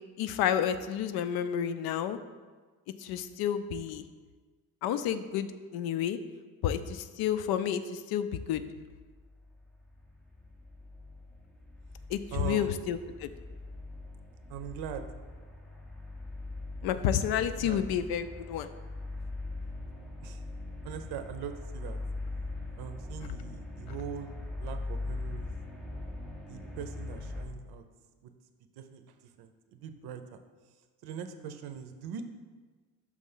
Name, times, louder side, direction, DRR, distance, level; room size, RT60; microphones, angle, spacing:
voice 1, 0.2-2.2 3.0-4.0 4.8-6.2 6.6-8.6 12.1-13.3 16.8-18.7, left 9 dB, 75° left, 11 dB, 0.5 m, -30 dB
sound 1, 8.9-27.4, left 2 dB, ahead, 0.4 m, -41 dB
voice 2, 12.3-12.8 14.5-15.1 17.3-17.8 20.2-20.4 20.8-22.0 22.8-25.5 26.5-27.8 28.2-28.3 28.8-30.4 31.0-32.2, right 8 dB, 85° right, 8 dB, 0.6 m, -41 dB
6.2 x 3.3 x 5.5 m, 1.4 s
cardioid pair, 170°, 37 cm